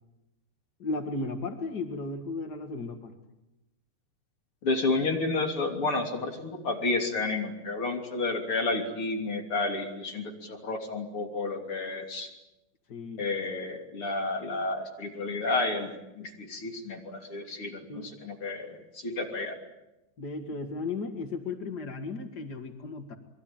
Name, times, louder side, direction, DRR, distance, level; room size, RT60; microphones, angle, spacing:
voice 1, 0.8-3.1 12.9-13.2 17.9-18.1 20.2-23.1, left 3 dB, 85° left, 6 dB, 0.9 m, -35 dB
voice 2, 4.6-12.3 13.2-19.5, left 3 dB, 35° left, 3 dB, 3.4 m, -31 dB
27.0 x 22.5 x 8.9 m, 0.95 s
omnidirectional pair, 5.1 m